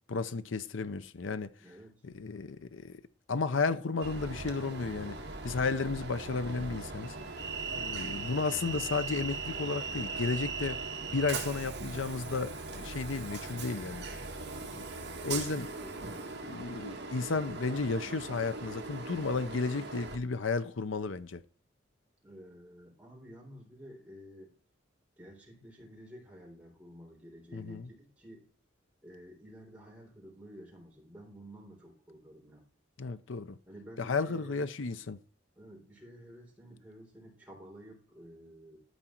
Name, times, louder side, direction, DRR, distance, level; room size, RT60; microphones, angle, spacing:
voice 1, 0.1-1.5 2.0-3.0 3.3-5.2 5.4-7.1 7.7-10.8 11.1-14.1 14.7-15.7 16.5-21.4 27.5-27.9 33.0-33.6 34.0-35.2, left 4 dB, 80° left, 0.7 m, -33 dB
voice 2, 1.6-2.0 15.2-16.4 22.2-24.5 25.2-28.5 29.0-32.7 33.7-35.0 35.6-38.8, equal, 5° right, 3.8 m, -51 dB
Train, 4.0-20.2, right 4 dB, 55° right, 1.8 m, -39 dB
13.0 x 5.1 x 4.5 m
head